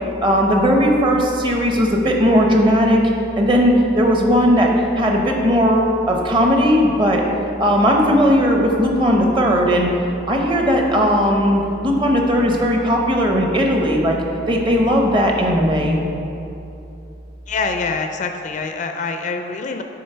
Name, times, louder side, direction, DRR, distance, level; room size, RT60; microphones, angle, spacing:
voice 1, 0.2-3.0 3.4-7.2 7.6-9.9 10.3-14.2 14.5-16.0, equal, 25° right, 1 dB, 0.8 m, -17 dB
voice 2, 17.5-19.8, left 4 dB, 40° left, 5 dB, 0.4 m, -25 dB
7.7 x 3.7 x 5.4 m, 2.8 s
head